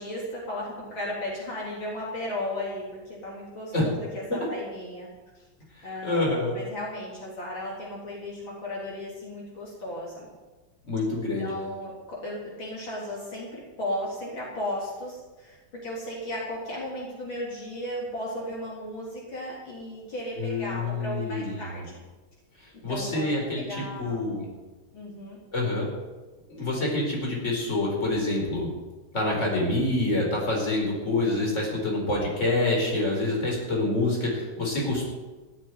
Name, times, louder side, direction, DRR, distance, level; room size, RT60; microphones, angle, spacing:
voice 1, 0.0-5.1 5.8-10.3 11.4-15.6 15.8-22.0 22.9-23.3 23.6-24.2 24.9-25.4, left 1 dB, 70° left, -4 dB, 4.3 m, -35 dB
voice 2, 6.0-6.5 10.9-11.5 20.4-21.8 22.6-24.4 25.5-25.9 26.5-28.7 29.1-35.1, left 2 dB, 35° left, -2 dB, 5.0 m, -27 dB
15.5 x 7.9 x 9.6 m, 1.2 s
omnidirectional pair, 2.2 m